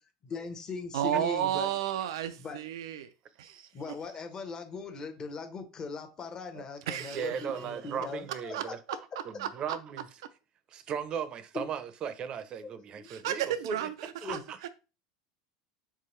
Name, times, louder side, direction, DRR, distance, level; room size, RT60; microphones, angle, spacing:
voice 1, 0.2-1.7 2.4-2.6 3.7-8.7 11.5-11.7 12.6-13.1 14.2-14.4, left 4 dB, 30° left, 0.8 m, -40 dB
voice 2, 0.9-3.1 3.4-3.6 6.9-7.3 8.5-8.6 9.4-9.5 13.1-14.4, right 11 dB, 85° right, 0.4 m, -32 dB
voice 3, 3.4-3.7 6.5-8.8 9.2-10.1 10.7-13.9 14.2-14.7, right 7 dB, 40° right, 0.6 m, -37 dB
4.6 x 2.9 x 3.1 m
supercardioid pair, 115°, 2 cm